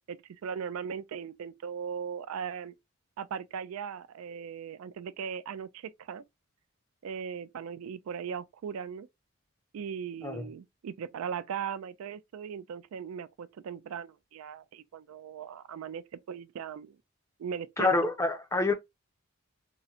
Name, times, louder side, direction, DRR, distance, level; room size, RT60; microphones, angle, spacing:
voice 1, 0.0-2.7 3.2-6.2 7.0-9.1 9.7-17.0 17.4-17.9, right 7 dB, 80° right, 0.3 m, -38 dB
voice 2, 17.8-18.7, left 3 dB, 15° left, 0.5 m, -27 dB
3.7 x 2.1 x 2.7 m
head